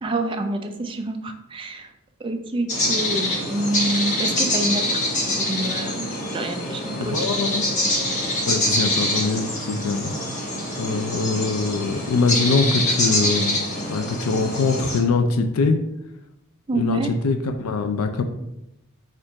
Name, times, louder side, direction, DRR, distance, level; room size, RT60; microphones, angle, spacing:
voice 1, 0.0-1.9 2.2-5.0 5.4-7.3 16.7-17.1, right 2 dB, 25° right, 5 dB, 0.4 m, -27 dB
sound 1, 2.7-15.0, left 1 dB, 35° left, 1.0 m, -25 dB
voice 2, 7.0-7.6 8.5-10.1 10.8-13.6 13.9-15.8 16.8-18.2, left 4 dB, 85° left, 6 dB, 0.4 m, -23 dB
4.4 x 2.5 x 4.6 m, 0.84 s
head